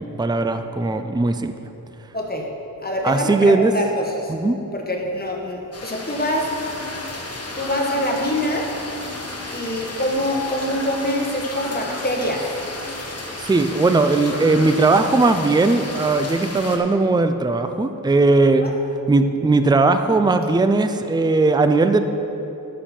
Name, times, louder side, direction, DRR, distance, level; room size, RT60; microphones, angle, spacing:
voice 1, 0.0-1.5 3.0-3.7 4.3-4.6 13.4-18.7 19.1-22.0, right 3 dB, 10° right, 8 dB, 0.4 m, -18 dB
voice 2, 2.1-2.5 2.8-4.3 4.7-6.5 7.6-8.7 9.5-12.5 18.6-18.7, left 1 dB, 25° left, 0 dB, 1.5 m, -25 dB
sound 1, 5.7-16.8, left 2 dB, 45° left, 1.3 m, -33 dB
11.5 x 7.3 x 4.4 m, 3.0 s
wide cardioid pair, 70°, 35 cm